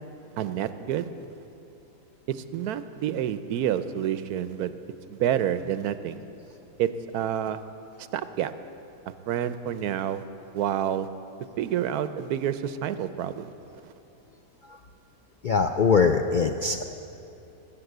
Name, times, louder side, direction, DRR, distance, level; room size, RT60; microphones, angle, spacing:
voice 1, 0.4-1.1 2.3-4.7 5.1-6.2 6.8-7.6 8.0-8.5 9.3-10.2 10.5-11.1 11.6-13.5 13.8-13.9, right 10 dB, 90° right, 12 dB, 1.2 m, -28 dB
voice 2, 15.4-16.8, left 5 dB, 70° left, 5 dB, 0.4 m, -22 dB
20.0 x 8.4 x 8.0 m, 2.8 s
omnidirectional pair, 1.6 m